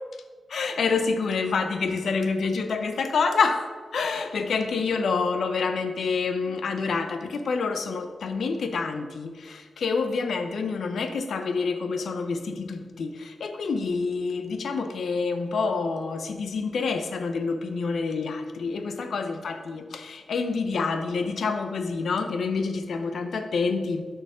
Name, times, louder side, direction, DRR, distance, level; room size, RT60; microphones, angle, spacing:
voice 1, 0.5-24.1, left 4 dB, 75° left, 7 dB, 0.6 m, -27 dB
6.3 x 4.6 x 4.9 m, 1.5 s
cardioid pair, 60°, 0 cm